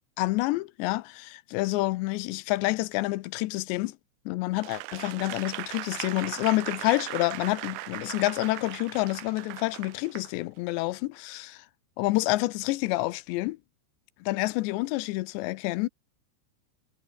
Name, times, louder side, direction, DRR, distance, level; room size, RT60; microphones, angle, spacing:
voice 1, 0.2-4.0 4.3-11.7 12.0-13.6 14.2-15.9, left 20 dB, 80° left, 2.7 m, -28 dB
Applause / Crowd, 4.6-10.3 10.8-11.0, right 19 dB, 80° right, 2.7 m, -38 dB
omnidirectional pair, 5.5 m